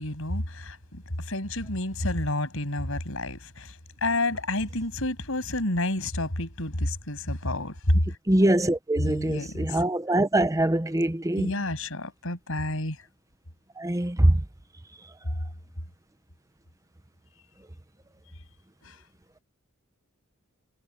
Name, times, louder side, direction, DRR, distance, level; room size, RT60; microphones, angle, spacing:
voice 1, 0.0-3.8 4.0-8.0 9.0-9.8 11.4-13.0 18.9-19.0, left 1 dB, 70° left, 7.2 m, -29 dB
voice 2, 8.3-11.5 13.8-14.4, right 1 dB, 15° right, 0.8 m, -23 dB
head